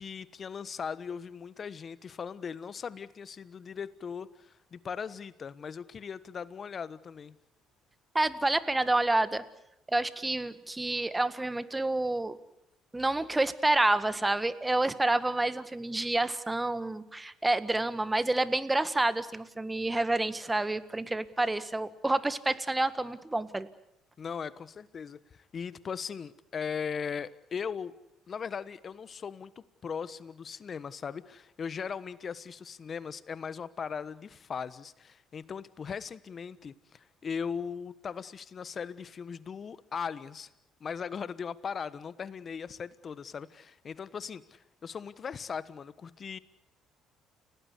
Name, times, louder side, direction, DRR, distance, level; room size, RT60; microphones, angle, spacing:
voice 1, 0.0-7.3 24.2-27.9 28.3-40.5 40.8-46.4, left 6 dB, 45° left, 16 dB, 1.3 m, -39 dB
voice 2, 8.2-9.4 9.9-12.4 12.9-23.7, right 2 dB, 15° right, 13 dB, 1.7 m, -28 dB
30.0 x 18.0 x 8.4 m, 0.84 s
hypercardioid pair, 60°, 0 cm